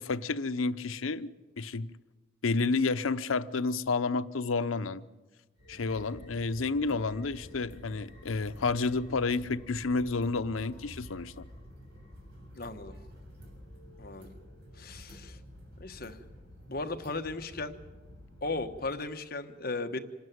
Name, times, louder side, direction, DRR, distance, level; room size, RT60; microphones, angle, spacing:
voice 1, 0.0-1.9 2.4-5.0 5.7-11.5, left 3 dB, 85° left, 0.7 m, -30 dB
sound 1, 5.6-18.9, equal, 55° right, 7.2 m, -50 dB
voice 2, 12.5-13.0 14.0-14.3 14.8-15.4 15.8-16.2 16.7-17.8 18.4-20.0, left 3 dB, 45° left, 1.2 m, -36 dB
26.5 x 13.0 x 9.3 m
head